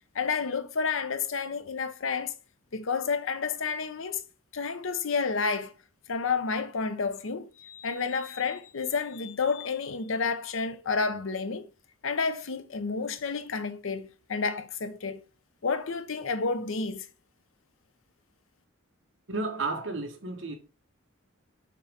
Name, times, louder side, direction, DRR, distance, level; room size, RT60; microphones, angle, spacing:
voice 1, 0.1-2.3 2.7-4.2 4.5-5.7 6.1-11.7 12.0-15.2 15.6-17.1, left 5 dB, 70° left, 0.7 m, -30 dB
voice 2, 19.3-20.6, right 3 dB, 60° right, 1.3 m, -32 dB
6.8 x 3.1 x 4.9 m
head